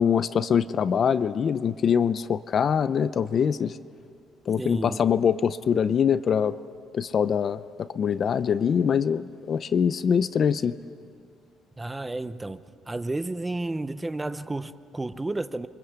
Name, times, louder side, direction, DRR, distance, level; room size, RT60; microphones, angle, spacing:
voice 1, 0.0-3.8 4.5-6.6 6.9-10.7, left 7 dB, 40° left, 0.6 m, -24 dB
voice 2, 4.6-5.0 11.8-12.6 12.9-15.7, right 2 dB, 10° right, 0.7 m, -31 dB
29.5 x 24.0 x 8.2 m
cardioid pair, 145°, 0 cm